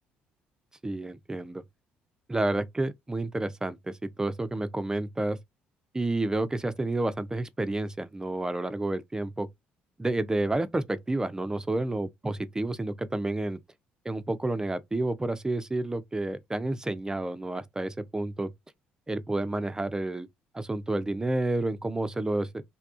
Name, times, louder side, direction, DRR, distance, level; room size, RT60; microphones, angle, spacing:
voice 1, 0.8-1.6 2.3-5.4 5.9-9.5 10.0-13.6 14.1-18.5 19.1-20.3 20.5-22.6, right 2 dB, 15° right, 0.4 m, -30 dB
2.8 x 2.3 x 2.4 m
hypercardioid pair, 60°, 4 cm